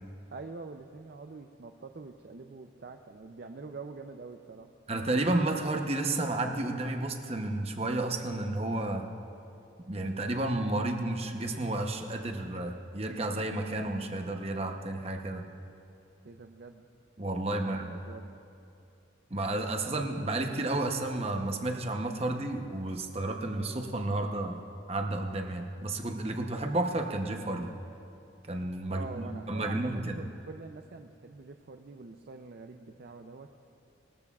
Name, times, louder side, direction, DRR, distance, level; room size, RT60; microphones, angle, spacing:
voice 1, 0.3-4.7 16.2-16.9 17.6-18.3 28.9-33.6, right 3 dB, 50° right, 5 dB, 0.5 m, -45 dB
voice 2, 4.9-9.1 9.9-15.4 17.2-18.0 19.3-24.5 24.9-27.7 28.5-30.1, right 2 dB, 30° right, 3 dB, 0.8 m, -31 dB
21.0 x 13.5 x 2.4 m, 2.6 s
head